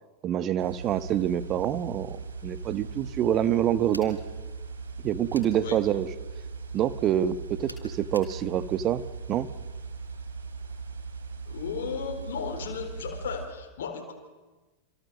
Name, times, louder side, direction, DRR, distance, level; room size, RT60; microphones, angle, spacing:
voice 1, 0.2-4.2 5.0-6.1 6.7-9.0 9.3-9.5, right 10 dB, 30° right, 13 dB, 1.5 m, -26 dB
sound 1, 0.6-13.5, right 4 dB, 70° right, 3.9 m, -39 dB
sound 2, 3.9-4.2 5.3-5.6 7.7-8.4, left 1 dB, 85° left, 3.4 m, -45 dB
voice 2, 11.5-14.1, left 6 dB, 60° left, 3 dB, 4.3 m, -35 dB
27.5 x 27.5 x 7.5 m, 1.2 s
figure-of-eight pair, 90°, 0 cm